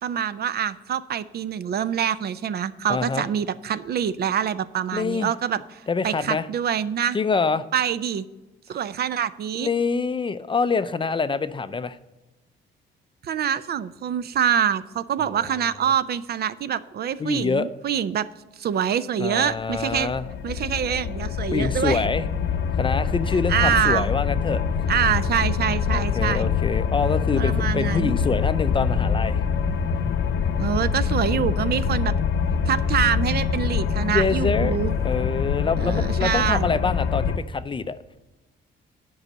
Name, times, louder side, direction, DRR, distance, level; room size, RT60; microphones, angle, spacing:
voice 1, 0.0-7.2 7.7-8.3 8.7-9.7 13.2-18.3 18.6-20.1 20.4-22.0 23.5-24.1 24.9-26.5 27.4-28.2 30.6-32.1 32.7-34.9 35.8-36.7, right 9 dB, 55° right, 15 dB, 0.5 m, -25 dB
voice 2, 2.9-3.3 4.9-5.3 5.9-6.5 7.1-7.6 9.6-12.0 15.2-15.5 17.2-17.7 19.2-20.2 21.5-22.3 22.8-24.6 25.9-29.4 34.0-38.0, left 4 dB, 25° left, 13 dB, 0.4 m, -25 dB
sound 1, 19.8-37.4, left 6 dB, 70° left, 0.7 m, -25 dB
8.0 x 5.4 x 7.3 m, 1.1 s
cardioid pair, 90°, 20 cm